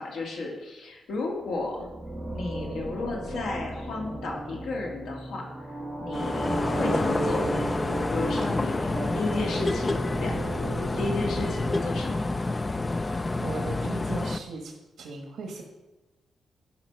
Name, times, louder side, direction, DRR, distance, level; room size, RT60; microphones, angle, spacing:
voice 1, 0.0-1.9 2.3-7.4 8.1-10.4 10.8-12.2, left 3 dB, 80° left, 0 dB, 2.3 m, -33 dB
sound 1, 1.4-12.6, right 2 dB, 5° right, 1.8 m, -35 dB
sound 2, 6.1-14.4, left 2 dB, 20° left, 0.3 m, -28 dB
voice 2, 13.1-14.7 15.0-15.6, right 4 dB, 70° right, 1 dB, 1.3 m, -38 dB
11.5 x 5.1 x 6.0 m, 1.1 s
wide cardioid pair, 165°, 0 cm